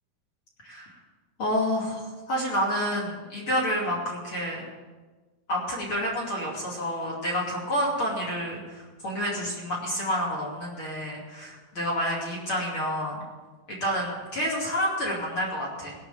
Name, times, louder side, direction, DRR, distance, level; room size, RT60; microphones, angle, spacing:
voice 1, 1.4-4.6 5.5-13.2 13.7-15.9, equal, 35° left, -3 dB, 2.4 m, -29 dB
18.5 x 6.7 x 7.2 m, 1.3 s
omnidirectional pair, 5.8 m